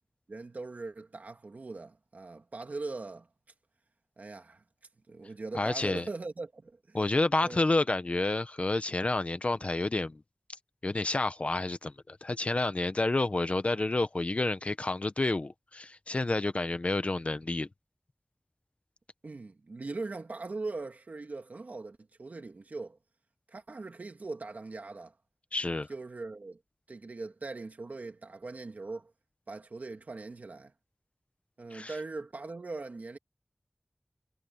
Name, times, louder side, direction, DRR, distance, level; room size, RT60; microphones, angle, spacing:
voice 1, 0.3-3.3 4.2-4.6 5.1-7.1 7.4-7.6 19.2-23.0 23.5-25.1 25.9-26.6 26.9-29.1 29.5-30.7 31.6-33.2, right 3 dB, 75° right, 2.4 m, -40 dB
voice 2, 5.5-6.1 6.9-10.2 10.8-17.7 25.5-25.9 31.7-31.9, left 2 dB, 50° left, 1.2 m, -29 dB
wide cardioid pair, 50°, 3 cm